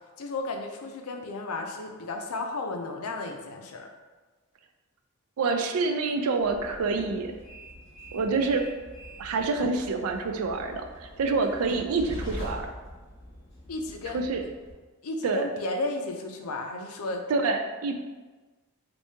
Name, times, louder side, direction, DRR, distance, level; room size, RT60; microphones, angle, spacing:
voice 1, 0.2-3.9 13.7-14.2 15.0-17.2, left 2 dB, 80° left, 3 dB, 0.5 m, -33 dB
voice 2, 5.4-7.3 8.1-8.6 9.2-12.7 14.1-14.4 15.2-15.4 17.3-17.9, right 4 dB, 75° right, 5 dB, 0.4 m, -27 dB
Train, 6.4-14.7, equal, 55° left, 1.0 m, -43 dB
3.5 x 2.7 x 2.7 m, 1.3 s
head